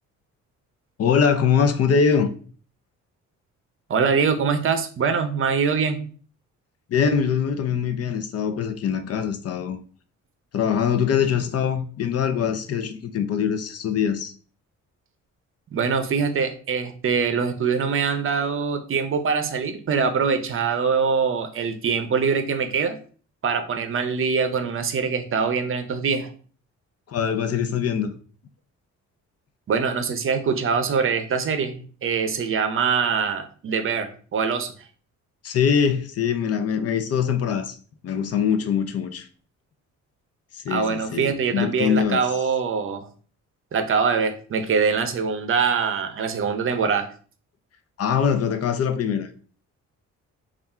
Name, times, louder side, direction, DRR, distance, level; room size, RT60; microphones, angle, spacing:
voice 1, 1.0-2.3 6.9-9.8 10.5-14.3 27.1-28.2 35.4-37.8 38.0-39.3 40.5-42.2 48.0-49.3, left 7 dB, 55° left, 0.6 m, -23 dB
voice 2, 3.9-6.0 15.7-23.0 23.4-26.3 29.7-34.7 40.7-43.1 43.7-47.1, right 5 dB, 45° right, 0.6 m, -23 dB
3.5 x 2.5 x 4.2 m
cardioid pair, 90°, 30 cm